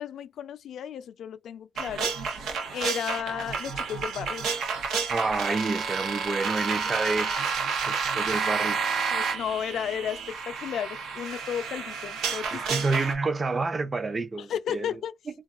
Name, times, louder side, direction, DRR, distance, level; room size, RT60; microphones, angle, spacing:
voice 1, 0.0-2.1 2.7-4.4 9.1-12.6 14.4-15.1, left 9 dB, 75° left, 0.3 m, -33 dB
sound 1, 1.8-13.1, right 5 dB, 90° right, 0.6 m, -30 dB
voice 2, 5.1-7.4 7.9-8.8 12.5-14.9, right 3 dB, 30° right, 0.4 m, -28 dB
2.3 x 2.3 x 3.5 m
cardioid pair, 115°, 0 cm